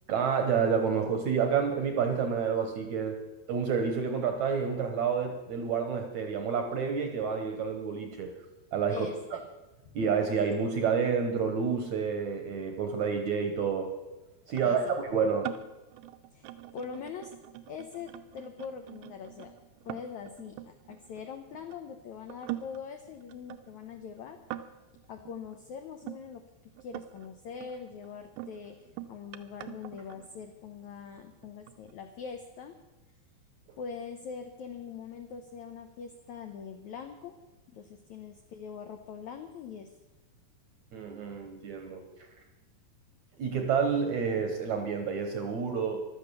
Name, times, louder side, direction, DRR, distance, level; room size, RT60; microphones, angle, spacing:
voice 1, 0.1-3.2 3.5-8.3 8.7-9.1 9.9-13.9 14.5-15.6 40.9-42.1 43.4-46.0, right 6 dB, 65° right, 5 dB, 1.9 m, -29 dB
voice 2, 8.9-9.4 9.8-9.9 14.6-14.9 16.3-17.3 17.7-19.5 19.8-24.4 25.1-26.4 26.8-32.8 33.8-37.4 37.7-39.9, left 6 dB, 85° left, 6 dB, 1.6 m, -43 dB
sound 1, 14.5-21.8 22.3-26.2 26.8-27.3 27.6-30.7 31.4-31.9, right 15 dB, 85° right, 2.8 m, -44 dB
15.0 x 12.0 x 6.8 m, 1.1 s
omnidirectional pair, 4.7 m